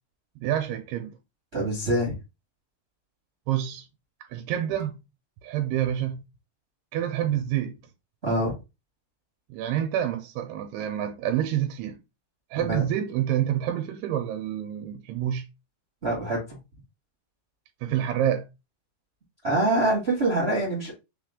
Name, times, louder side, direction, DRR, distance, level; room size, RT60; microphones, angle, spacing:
voice 1, 0.4-1.1 3.5-3.9 4.3-5.0 5.4-6.2 6.9-7.8 9.5-12.0 12.5-15.5 17.8-18.5, right 11 dB, 85° right, 2.6 m, -27 dB
voice 2, 1.5-2.1 8.2-8.5 12.5-12.8 16.0-16.6 19.4-20.9, right 1 dB, 50° right, 0.7 m, -25 dB
5.8 x 2.4 x 3.7 m
omnidirectional pair, 4.5 m